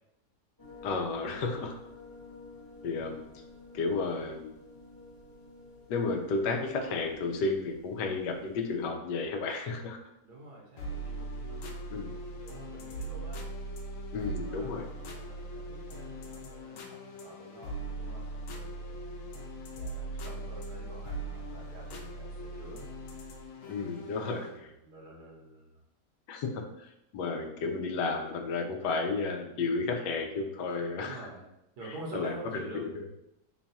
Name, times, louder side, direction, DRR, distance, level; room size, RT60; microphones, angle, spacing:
sound 1, 0.6-8.9, left 3 dB, 20° left, 0.7 m, -51 dB
voice 1, 0.8-1.7 2.8-3.2 3.7-4.5 5.9-10.0 11.9-12.1 14.1-14.9 23.7-24.5 26.3-31.3 31.9-32.9, left 3 dB, 90° left, 3 dB, 1.3 m, -32 dB
voice 2, 10.2-11.8 12.1-13.4 14.2-19.0 19.8-23.3 23.8-25.8 30.9-31.4 31.8-32.9, right 2 dB, 75° right, -3 dB, 1.6 m, -48 dB
sound 2, 10.8-24.6, right 2 dB, 70° left, 0.8 m, -40 dB
3.9 x 2.3 x 4.0 m, 0.83 s
omnidirectional pair, 1.8 m